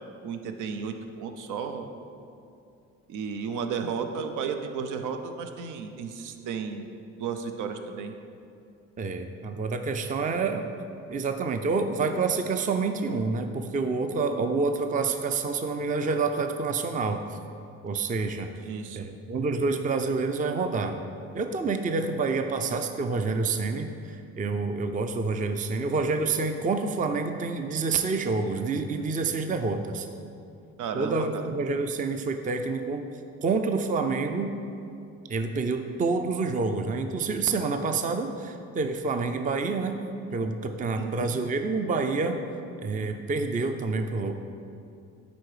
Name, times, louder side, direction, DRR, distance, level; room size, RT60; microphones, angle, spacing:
voice 1, 0.2-1.9 3.1-6.8 7.2-8.1 18.6-19.1 30.8-31.5 41.0-41.4, right 6 dB, 85° right, 6 dB, 0.6 m, -33 dB
voice 2, 9.0-10.7 11.1-17.2 17.8-18.5 18.9-21.0 21.3-30.1 30.9-33.0 33.4-34.5 35.3-40.0 40.3-42.4 42.8-44.3, right 4 dB, 25° right, 6 dB, 0.4 m, -28 dB
9.6 x 3.9 x 4.8 m, 2.5 s
cardioid pair, 90°, 30 cm